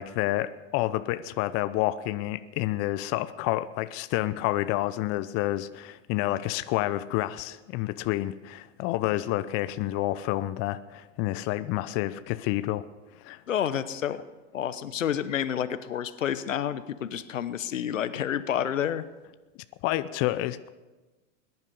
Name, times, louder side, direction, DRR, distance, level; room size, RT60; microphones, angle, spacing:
voice 1, 0.0-12.9 13.2-13.4 19.8-20.7, left 16 dB, 35° left, 13 dB, 0.6 m, -29 dB
voice 2, 13.5-14.2 14.5-19.0, left 9 dB, 85° left, 13 dB, 1.0 m, -29 dB
21.0 x 11.0 x 5.4 m, 1.2 s
hypercardioid pair, 105°, 37 cm